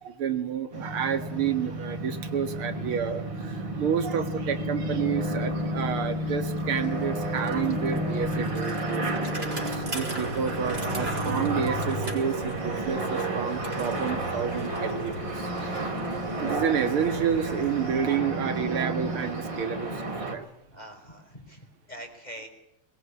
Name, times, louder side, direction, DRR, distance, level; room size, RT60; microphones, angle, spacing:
voice 1, 0.1-3.3 3.5-20.5, right 7 dB, 80° right, 10 dB, 2.6 m, -30 dB
sound 1, 0.7-20.3, right 1 dB, 55° right, 4.8 m, -31 dB
Bicycle, 5.1-5.2 5.5-18.4, right 1 dB, 25° right, 5.7 m, -43 dB
sound 2, 11.9-18.0, left 2 dB, 50° left, 8.0 m, -44 dB
voice 2, 20.7-22.5, equal, 20° left, 4 dB, 5.5 m, -44 dB
22.0 x 21.5 x 9.9 m, 0.83 s
omnidirectional pair, 2.4 m